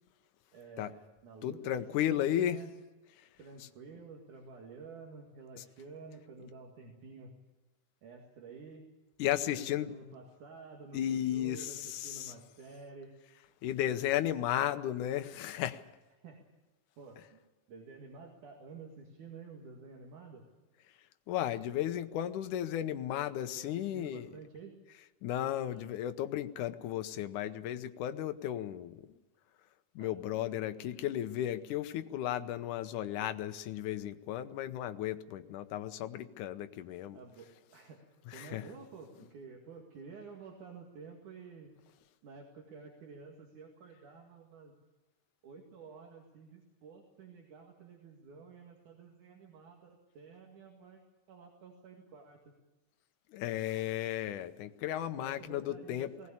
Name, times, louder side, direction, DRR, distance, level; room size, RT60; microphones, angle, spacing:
voice 1, 0.5-2.7 3.4-7.3 8.0-8.9 9.5-13.1 16.2-16.4 17.0-17.4 17.7-20.4 23.1-23.3 23.6-24.7 25.6-25.9 30.0-30.1 37.1-38.0 38.3-41.7 42.2-44.7 45.4-51.0 51.3-52.4 54.8-56.3, right 4 dB, 70° right, 1 dB, 3.5 m, -51 dB
voice 2, 1.4-2.6 3.2-3.3 5.6-5.7 9.2-9.9 10.9-12.3 13.6-15.8 21.3-24.3 25.2-29.2 30.0-37.2 38.3-38.6 53.3-56.1, left 12 dB, 75° left, 10 dB, 2.3 m, -34 dB
19.5 x 18.5 x 8.6 m, 1.1 s
omnidirectional pair, 3.8 m